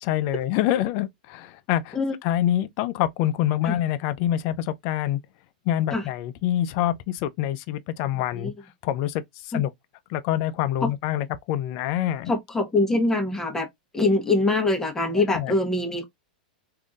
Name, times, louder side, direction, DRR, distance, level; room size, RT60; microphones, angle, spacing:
voice 1, 0.0-5.2 5.7-8.5 8.8-9.7 10.1-12.3 15.1-15.6, left 12 dB, 50° left, 0.4 m, -26 dB
voice 2, 12.3-13.7 13.9-16.0, left 2 dB, 10° left, 1.1 m, -23 dB
3.4 x 2.6 x 2.3 m
hypercardioid pair, 115°, 5 cm